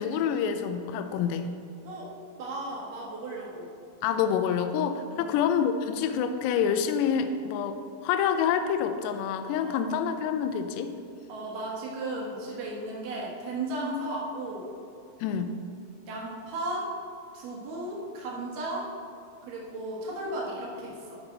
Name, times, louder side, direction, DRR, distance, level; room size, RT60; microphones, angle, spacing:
voice 1, 0.0-1.5 4.0-10.9 15.2-15.5, left 7 dB, 85° left, 9 dB, 2.5 m, -27 dB
voice 2, 2.4-3.7 5.1-5.4 9.6-9.7 11.3-14.7 16.1-16.9 17.3-18.9 19.4-21.2, right 1 dB, 60° right, -3 dB, 2.6 m, -35 dB
11.5 x 5.2 x 4.1 m, 2.6 s
omnidirectional pair, 5.2 m